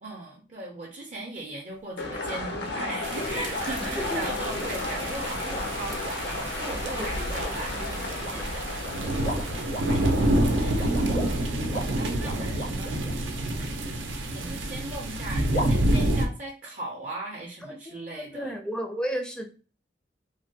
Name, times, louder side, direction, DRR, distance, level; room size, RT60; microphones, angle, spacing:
voice 1, 0.0-9.1 9.9-13.0 13.4-13.8 14.3-18.6, right 2 dB, 45° right, -2 dB, 0.5 m, -39 dB
sound 1, 2.0-11.4, left 3 dB, 65° left, 0.6 m, -34 dB
sound 2, 2.1-13.1 15.5-15.7, right 2 dB, 85° left, 1.5 m, -38 dB
sound 3, 3.0-16.3, right 1 dB, 85° right, 0.6 m, -28 dB
voice 2, 3.8-4.2 7.0-7.5 17.7-19.5, equal, 5° left, 4 dB, 0.4 m, -33 dB
3.2 x 2.2 x 2.7 m, 0.37 s
head